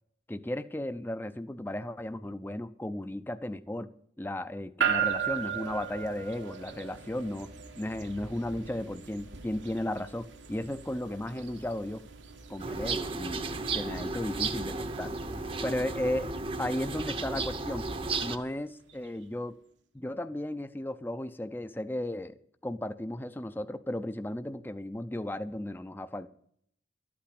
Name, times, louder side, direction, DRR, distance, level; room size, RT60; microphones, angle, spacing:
voice 1, 0.3-3.9 4.2-7.5 7.8-12.0 12.5-13.5 13.7-15.1 15.6-16.3 16.6-17.9 18.2-19.6 19.9-22.4 22.6-26.3, left 1 dB, 10° left, 11 dB, 0.4 m, -35 dB
sound 1, 4.8-19.1, right 7 dB, 90° right, 1.6 m, -38 dB
sound 2, 12.6-18.4, right 3 dB, 30° right, 0.7 m, -34 dB
12.5 x 8.6 x 8.5 m, 0.67 s
head